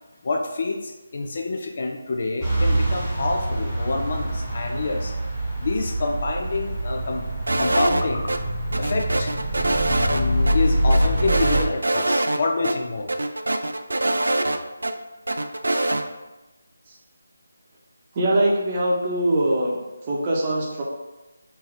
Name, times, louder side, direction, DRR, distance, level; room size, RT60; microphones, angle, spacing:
voice 1, 0.2-5.2 5.6-7.3 7.6-8.4 8.8-9.3 10.1-13.1, left 3 dB, 45° left, 3 dB, 0.5 m, -27 dB
sound 1, 2.4-11.7, right 1 dB, 10° right, 1.2 m, -25 dB
sound 2, 7.5-8.4 8.7-10.2 10.5-10.6 10.9-12.4 12.6-12.7 13.1-14.9 15.3-16.0, right 2 dB, 70° right, 0.4 m, -24 dB
voice 2, 18.1-19.8 20.1-20.8, right 1 dB, 30° right, -4 dB, 0.8 m, -22 dB
3.6 x 2.8 x 4.5 m, 1.1 s
figure-of-eight pair, 155°, 0 cm